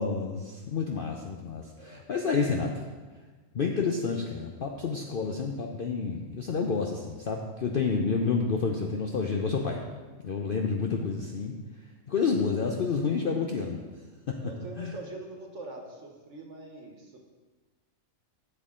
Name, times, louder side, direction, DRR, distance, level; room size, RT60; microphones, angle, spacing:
voice 1, 0.0-2.7 3.5-9.8 10.2-11.5 12.1-13.8 14.3-14.4 14.8-15.0, left 5 dB, 50° left, 1 dB, 0.8 m, -29 dB
voice 2, 1.7-2.1 12.5-12.7 14.4-17.2, right 2 dB, 65° right, 2 dB, 1.6 m, -43 dB
12.0 x 7.7 x 3.7 m, 1.4 s
omnidirectional pair, 1.4 m